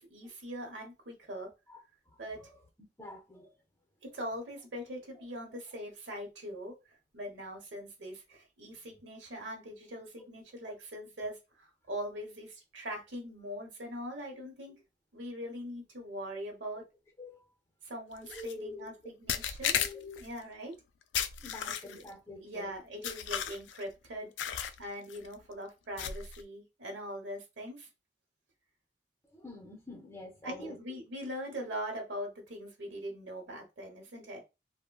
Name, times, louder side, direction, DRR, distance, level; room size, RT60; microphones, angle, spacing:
voice 1, 0.0-1.5 2.2-2.4 4.0-14.8 15.1-16.8 17.8-19.8 20.2-20.7 21.8-27.9 30.4-34.4, equal, 85° right, 1.0 m, -42 dB
voice 2, 1.7-2.2 3.0-3.5 17.2-17.4 18.2-19.1 19.8-20.2 21.4-22.7 29.3-30.8, left 2 dB, 15° left, 0.6 m, -46 dB
sound 1, 18.3-18.5 19.3-20.3 21.1-22.1 23.0-23.8 24.4-24.8 25.1-25.3 26.0-26.4, left 9 dB, 90° left, 0.3 m, -34 dB
3.5 x 2.1 x 2.2 m
head